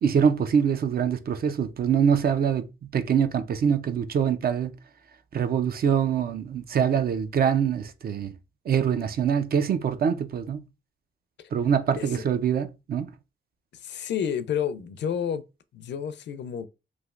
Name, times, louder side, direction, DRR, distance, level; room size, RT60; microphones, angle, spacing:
voice 1, 0.0-2.7 2.9-4.7 5.3-8.3 8.7-10.6 11.5-13.1, right 7 dB, 50° right, 0.4 m, -24 dB
voice 2, 13.8-15.4 15.7-16.7, left 8 dB, 65° left, 0.4 m, -30 dB
3.1 x 2.5 x 2.4 m
cardioid pair, 85°, 20 cm